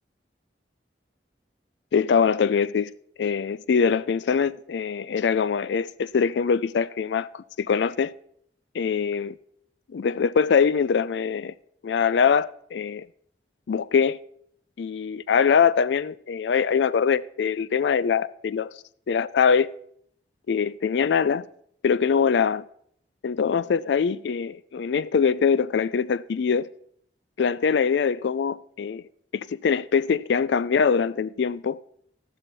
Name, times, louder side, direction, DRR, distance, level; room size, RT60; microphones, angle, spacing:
voice 1, 1.9-2.9 3.2-8.1 8.7-9.4 9.9-11.5 11.8-13.1 13.7-14.2 14.8-18.7 19.1-19.7 20.5-21.5 21.8-22.6 23.2-26.7 27.4-29.0 29.3-31.8, left 6 dB, 80° left, 0.4 m, -23 dB
13.0 x 12.5 x 4.1 m
head